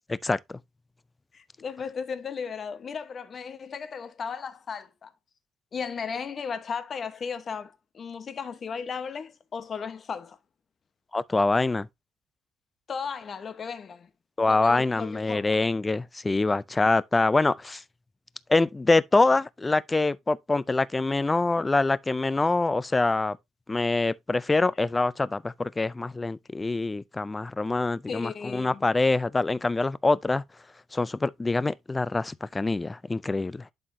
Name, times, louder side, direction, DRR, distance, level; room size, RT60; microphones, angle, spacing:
voice 1, 0.1-0.6 11.1-11.9 14.4-17.8 18.5-23.4 23.7-30.4 30.9-33.6, left 3 dB, 15° left, 0.3 m, -25 dB
voice 2, 1.3-5.1 5.7-10.4 12.9-14.1 14.5-15.6 28.1-28.8, left 6 dB, 35° left, 1.0 m, -35 dB
11.0 x 4.4 x 2.7 m
cardioid pair, 140°, 0 cm